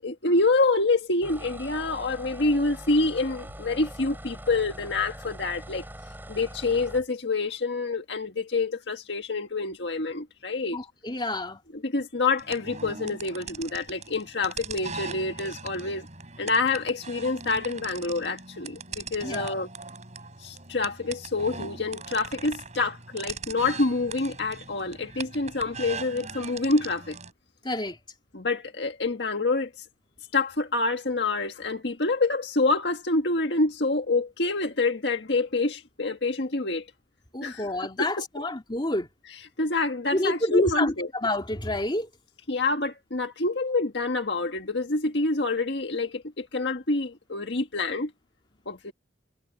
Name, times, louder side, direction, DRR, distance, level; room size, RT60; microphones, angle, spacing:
voice 1, 0.0-5.8 6.3-10.8 11.7-16.1 16.4-19.7 20.4-27.2 28.3-29.7 30.3-36.9 37.4-38.4 39.6-41.1 42.5-48.1 48.7-48.9, left 3 dB, 70° left, 1.7 m, -27 dB
sound 1, 1.2-7.1, right 1 dB, 10° right, 6.7 m, -42 dB
voice 2, 10.7-11.6 19.2-19.5 27.6-28.0 37.3-39.1 40.1-40.9 41.2-42.1, left 1 dB, 25° left, 2.7 m, -28 dB
sound 2, 12.4-27.3, right 5 dB, 40° right, 7.5 m, -40 dB
head